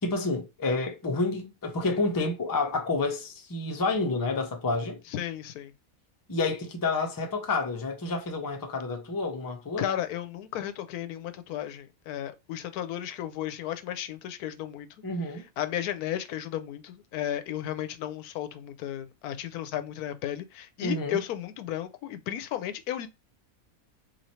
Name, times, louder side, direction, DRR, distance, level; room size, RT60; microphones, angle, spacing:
voice 1, 0.0-5.0 6.3-9.9 15.0-15.4 20.8-21.2, left 3 dB, 25° left, 0.5 m, -29 dB
voice 2, 5.1-5.7 9.8-14.9 15.6-23.1, left 11 dB, 85° left, 1.1 m, -34 dB
3.2 x 2.5 x 4.2 m
omnidirectional pair, 1.6 m